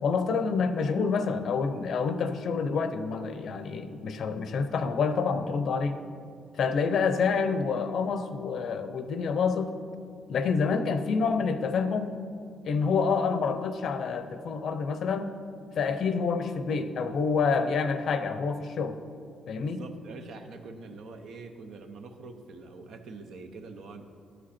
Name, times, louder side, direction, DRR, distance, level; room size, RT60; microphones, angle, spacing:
voice 1, 0.0-6.0 6.6-9.7 10.3-12.2 12.6-15.3 15.7-19.0 19.5-19.8, left 5 dB, 65° left, 10 dB, 0.6 m, -27 dB
voice 2, 19.6-24.0, right 3 dB, 70° right, 6 dB, 0.7 m, -44 dB
12.0 x 5.1 x 4.3 m, 2.4 s
cardioid pair, 90°, 0 cm